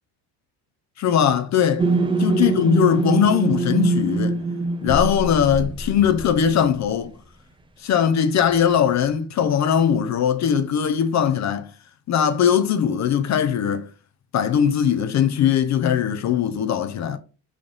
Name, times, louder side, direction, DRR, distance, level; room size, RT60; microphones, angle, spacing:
voice 1, 1.0-1.9 2.2-4.4 4.8-7.1 7.8-11.7 12.1-13.9 14.3-17.2, left 8 dB, 45° left, 0.5 m, -20 dB
sound 1, 1.8-6.5, right 4 dB, 15° right, 0.4 m, -23 dB
3.6 x 2.3 x 3.7 m
cardioid pair, 95°, 42 cm